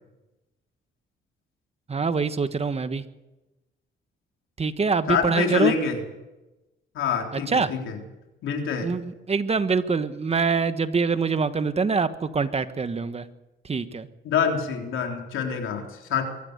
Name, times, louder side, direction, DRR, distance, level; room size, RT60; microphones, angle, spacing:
voice 1, 1.9-3.0 4.6-5.7 7.3-7.7 8.8-13.3 13.6-14.1, right 4 dB, 30° right, 11 dB, 1.4 m, -24 dB
voice 2, 5.1-6.0 6.9-8.0 8.4-8.9 14.2-16.2, left 7 dB, 80° left, 3 dB, 3.8 m, -26 dB
23.5 x 13.5 x 8.1 m, 1.0 s
cardioid pair, 90°, 20 cm